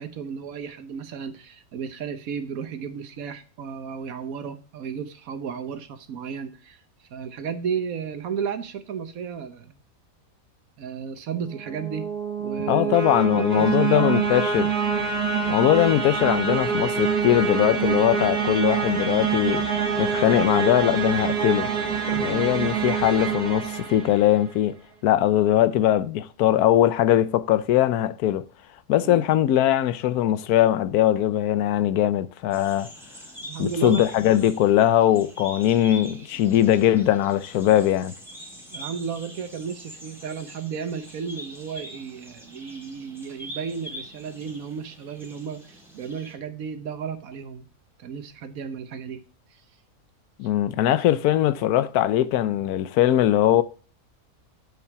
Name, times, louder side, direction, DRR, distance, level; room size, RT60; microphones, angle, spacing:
voice 1, 0.0-6.8 7.1-9.7 10.8-12.1 12.4-13.0 13.3-14.2 22.2-22.7 29.0-29.2 33.4-34.0 36.0-36.2 38.7-47.7 48.0-49.2, right 6 dB, 70° right, 1.3 m, -33 dB
sound 1, 11.5-24.5, right 6 dB, 90° right, 1.9 m, -26 dB
voice 2, 12.7-14.7 15.5-19.7 20.0-21.7 22.1-24.8 25.0-28.4 28.9-32.9 33.6-38.1 50.4-53.6, left 12 dB, 85° left, 1.1 m, -21 dB
sound 2, 32.5-46.3, equal, ahead, 2.3 m, -43 dB
7.7 x 5.9 x 4.6 m
omnidirectional pair, 1.6 m